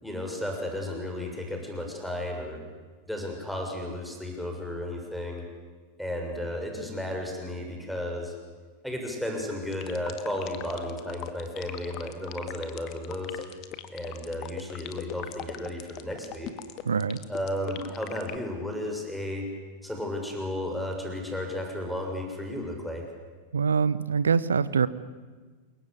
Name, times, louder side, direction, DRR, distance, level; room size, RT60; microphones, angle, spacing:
voice 1, 0.0-2.6 3.1-5.4 6.0-8.3 8.8-13.4 13.9-16.5 17.3-19.5 19.8-23.0, left 1 dB, ahead, 2 dB, 6.7 m, -33 dB
sound 1, 9.7-18.4, left 14 dB, 40° left, 1.9 m, -39 dB
voice 2, 16.9-17.2 23.5-24.9, right 6 dB, 70° right, 17 dB, 1.0 m, -24 dB
28.5 x 22.5 x 8.4 m, 1.4 s
figure-of-eight pair, 90°, 0 cm